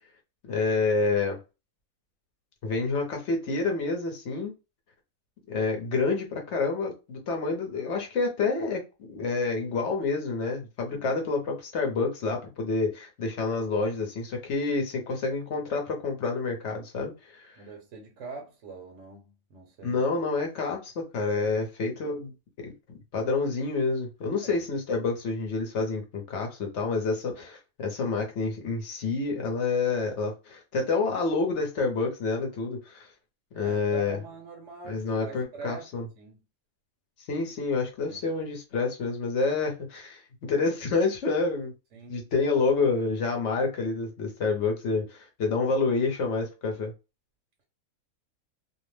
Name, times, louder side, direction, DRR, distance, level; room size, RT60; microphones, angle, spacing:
voice 1, 0.4-1.4 2.6-4.5 5.5-17.6 19.8-22.3 22.6-22.7 23.1-33.1 33.5-34.2 34.8-36.0 37.3-41.7 42.1-46.9, left 4 dB, 60° left, 1.0 m, -28 dB
voice 2, 10.9-11.2 17.6-20.0 24.3-24.6 33.5-36.4 38.1-38.2 41.9-42.3, right 4 dB, 65° right, 0.9 m, -44 dB
2.6 x 2.1 x 3.1 m
omnidirectional pair, 1.5 m